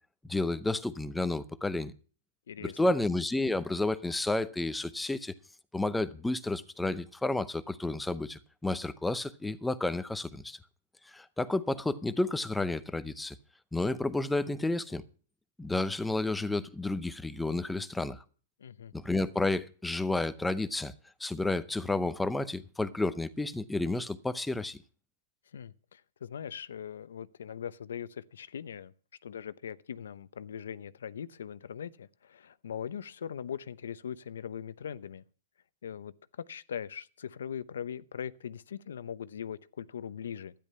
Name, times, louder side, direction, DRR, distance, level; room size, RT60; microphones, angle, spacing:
voice 1, 0.3-1.9 2.6-5.3 5.7-10.6 11.1-13.3 13.7-15.0 15.6-18.2 18.9-20.9 21.2-24.8, left 2 dB, 5° left, 0.6 m, -31 dB
voice 2, 2.5-3.0 18.6-18.9 25.5-28.9 29.2-35.2 35.8-40.5, left 8 dB, 90° left, 0.8 m, -41 dB
12.5 x 10.5 x 5.5 m
hypercardioid pair, 160°, 0 cm